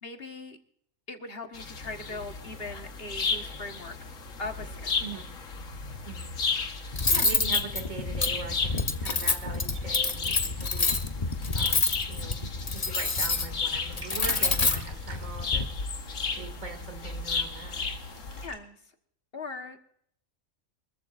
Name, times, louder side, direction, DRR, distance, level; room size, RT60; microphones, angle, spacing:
voice 1, 0.0-0.6 1.1-4.0 4.4-4.9 18.4-18.8 19.3-19.8, left 3 dB, 45° left, 5 dB, 1.6 m, -39 dB
sound 1, 1.5-18.5, left 4 dB, 75° left, 1.8 m, -34 dB
Cutlery silverware, 6.9-15.6, left 3 dB, 30° left, 1.0 m, -28 dB
voice 2, 7.1-11.0 11.5-12.4 12.8-15.7 16.4-17.9, right 4 dB, 80° right, 6 dB, 2.9 m, -41 dB
sound 2, 9.8-18.6, right 1 dB, 35° right, 3.0 m, -49 dB
24.5 x 14.5 x 2.6 m, 0.69 s
omnidirectional pair, 1.4 m